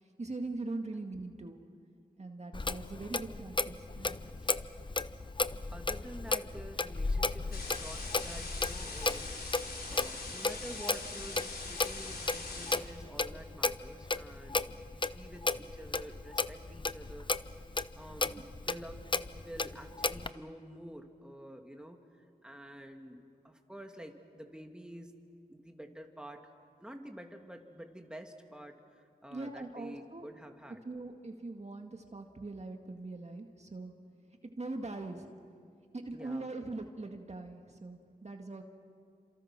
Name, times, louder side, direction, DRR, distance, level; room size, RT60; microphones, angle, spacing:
voice 1, 0.2-1.6 2.2-4.2 29.3-30.3 30.8-33.9 34.4-35.3 35.9-38.6, right 2 dB, 40° right, 4 dB, 2.0 m, -41 dB
Clock, 2.5-20.3, left 3 dB, 30° left, 0.8 m, -35 dB
voice 2, 5.7-9.4 9.9-14.7 14.9-17.3 17.9-22.0 22.4-25.2 25.5-26.5 26.8-30.8 36.1-36.5, right 1 dB, 5° right, 3 dB, 2.5 m, -49 dB
sound 1, 7.5-12.8, left 3 dB, 70° left, 4.3 m, -42 dB
29.0 x 27.0 x 6.1 m, 2.3 s
cardioid pair, 50°, 16 cm